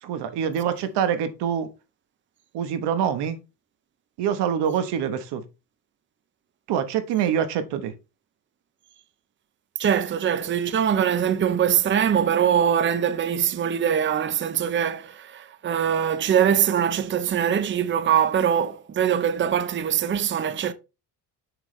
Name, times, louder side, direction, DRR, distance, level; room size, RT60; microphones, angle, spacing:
voice 1, 0.0-1.7 2.5-3.4 4.2-5.4 6.7-7.9, right 8 dB, 85° right, 1.2 m, -25 dB
voice 2, 9.8-20.7, right 8 dB, 30° right, 0.7 m, -22 dB
7.0 x 6.1 x 3.2 m
cardioid pair, 115°, 40 cm